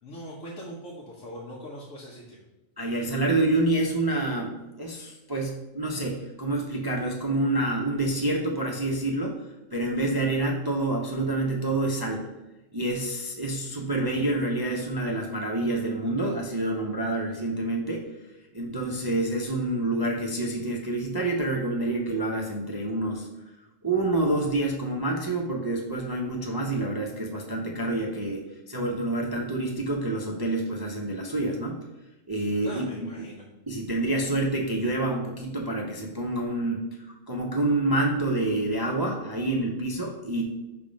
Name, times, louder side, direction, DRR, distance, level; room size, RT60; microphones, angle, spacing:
voice 1, 0.0-2.4 32.6-33.4, equal, 75° left, -5 dB, 1.4 m, -41 dB
voice 2, 2.8-9.4 9.7-12.3 12.7-18.1 18.5-23.3 23.8-31.8 32.3-32.9 33.7-40.4, right 2 dB, 25° right, 0 dB, 0.5 m, -27 dB
5.8 x 3.6 x 5.1 m, 1.0 s
omnidirectional pair, 1.4 m